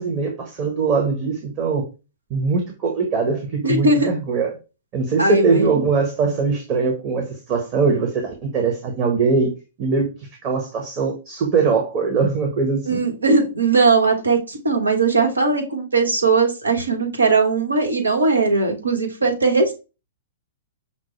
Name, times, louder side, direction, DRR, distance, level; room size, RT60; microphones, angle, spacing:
voice 1, 0.0-1.8 2.3-4.5 4.9-9.5 9.8-10.1 10.4-13.0, right 4 dB, 35° right, 1.1 m, -21 dB
voice 2, 3.6-4.1 5.2-5.8 12.9-19.7, right 3 dB, 90° right, 1.2 m, -19 dB
5.9 x 2.1 x 3.2 m
hypercardioid pair, 115°, 0 cm